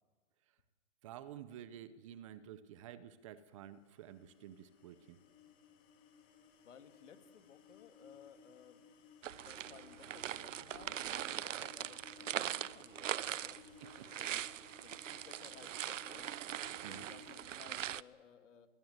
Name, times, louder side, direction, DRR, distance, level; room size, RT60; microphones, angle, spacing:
voice 1, 1.0-5.2 14.0-14.1 16.8-17.1, right 10 dB, 25° right, 15 dB, 0.7 m, -51 dB
sound 1, 3.6-17.5, left 5 dB, 20° left, 2.6 m, -60 dB
voice 2, 6.6-8.8 9.4-13.6 14.2-16.3 16.9-18.7, left 7 dB, 70° left, 8 dB, 2.4 m, -59 dB
sound 2, 9.2-18.0, right 11 dB, 85° right, 0.7 m, -41 dB
21.5 x 20.0 x 8.0 m, 1.5 s
hypercardioid pair, 160°, 37 cm